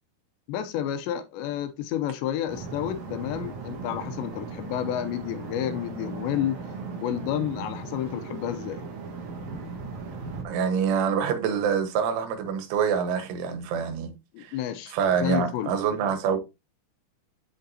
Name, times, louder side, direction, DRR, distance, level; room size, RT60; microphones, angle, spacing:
voice 1, 0.5-6.6 7.0-8.8 14.3-15.7, left 11 dB, 80° left, 2.9 m, -30 dB
sound 1, 2.5-10.4, right 4 dB, 55° right, 2.1 m, -37 dB
voice 2, 10.5-14.1 14.4-14.6 14.9-16.4, right 7 dB, 85° right, 3.8 m, -26 dB
7.9 x 7.7 x 2.8 m
omnidirectional pair, 5.3 m